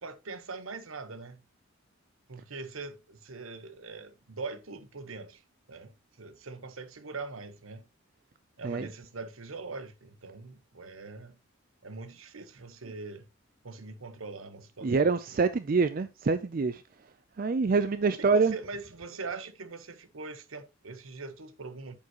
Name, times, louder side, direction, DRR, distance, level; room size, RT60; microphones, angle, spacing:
voice 1, 0.0-1.4 2.3-5.4 5.7-7.9 8.6-11.4 11.8-13.3 13.6-15.4 17.8-22.0, right 3 dB, 75° right, 1.1 m, -42 dB
voice 2, 14.8-16.8 17.4-18.5, right 4 dB, 40° right, 0.4 m, -26 dB
9.5 x 7.2 x 2.9 m
head